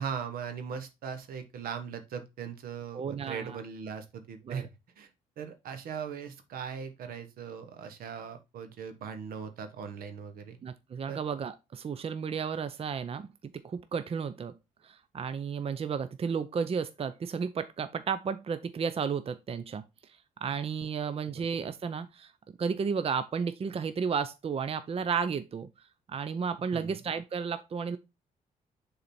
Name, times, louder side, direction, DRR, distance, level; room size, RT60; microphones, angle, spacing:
voice 1, 0.0-4.7 5.0-5.1 5.4-10.6 11.1-11.2 21.2-21.4 26.7-27.0, right 7 dB, 80° right, 1.2 m, -39 dB
voice 2, 2.9-3.6 4.5-4.6 10.6-14.5 14.8-22.3 22.6-25.7 26.1-28.0, right 6 dB, 40° right, 0.6 m, -33 dB
6.8 x 4.0 x 4.3 m
cardioid pair, 70°, 15 cm